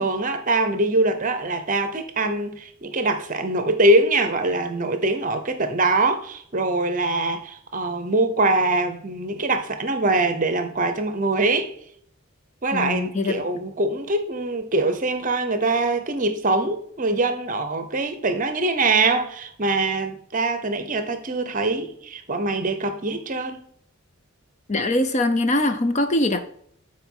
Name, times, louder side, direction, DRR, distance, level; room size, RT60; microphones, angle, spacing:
voice 1, 0.0-11.7 12.6-23.6, right 2 dB, 35° right, 0.8 m, -23 dB
voice 2, 12.7-13.4 24.7-26.4, left 1 dB, 30° left, 0.6 m, -22 dB
8.9 x 4.5 x 3.8 m
head